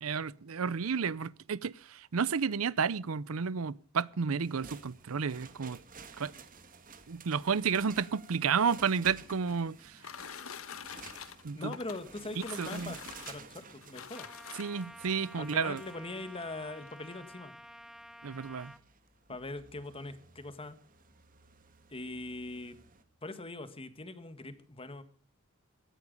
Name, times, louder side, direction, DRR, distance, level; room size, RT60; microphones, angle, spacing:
voice 1, 0.0-5.8 6.2-6.3 7.1-10.0 11.4-11.7 12.6-12.9 14.6-15.8 18.2-18.7, right 6 dB, 85° right, 0.6 m, -31 dB
sound 1, 4.4-23.0, right 5 dB, 40° right, 1.7 m, -54 dB
sound 2, 8.9-15.0 15.9-16.0 16.4-16.5 16.8-17.2, left 7 dB, 75° left, 1.2 m, -47 dB
voice 2, 11.5-13.0 13.3-14.3 15.4-17.6 19.3-20.8 21.9-22.8 23.2-25.0, left 2 dB, 25° left, 1.6 m, -41 dB
Trumpet, 14.1-18.8, equal, ahead, 1.0 m, -51 dB
17.0 x 13.0 x 5.2 m
head